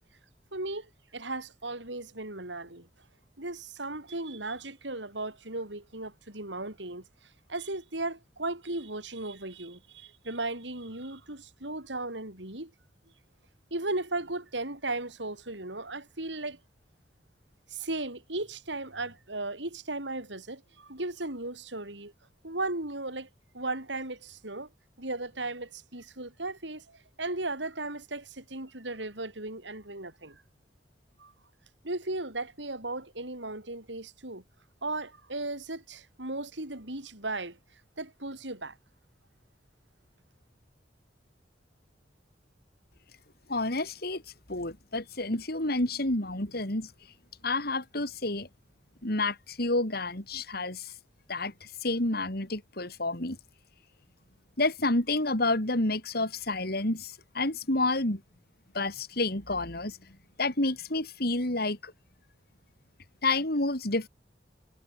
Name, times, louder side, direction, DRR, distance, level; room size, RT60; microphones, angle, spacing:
voice 1, 0.5-0.9 1.1-2.9 3.4-7.0 7.5-12.7 13.7-16.6 17.7-22.1 22.4-23.3 23.5-24.7 25.0-30.4 31.2-31.3 31.8-34.4 34.8-37.6 38.0-38.8, right 2 dB, 80° right, 7.1 m, -36 dB
voice 2, 43.5-44.2 44.5-46.9 47.4-48.5 49.0-50.9 51.3-51.5 51.8-53.4 54.6-58.2 58.7-60.0 60.4-61.9 63.2-64.1, left 2 dB, 60° left, 4.5 m, -29 dB
head